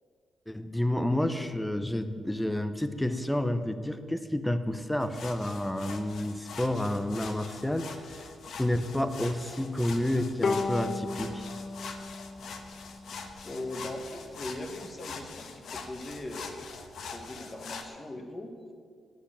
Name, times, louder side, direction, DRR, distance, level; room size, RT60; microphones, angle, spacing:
voice 1, 0.5-8.2 8.5-11.4, left 1 dB, 5° left, 10 dB, 0.6 m, -30 dB
sound 1, 5.0-17.9, left 5 dB, 60° left, 1.1 m, -43 dB
Bowed string instrument, 10.4-13.8, left 3 dB, 45° left, 0.6 m, -34 dB
voice 2, 13.4-18.5, left 1 dB, 25° left, 4 dB, 1.3 m, -40 dB
9.0 x 7.9 x 8.5 m, 2.1 s
cardioid pair, 130°, 0 cm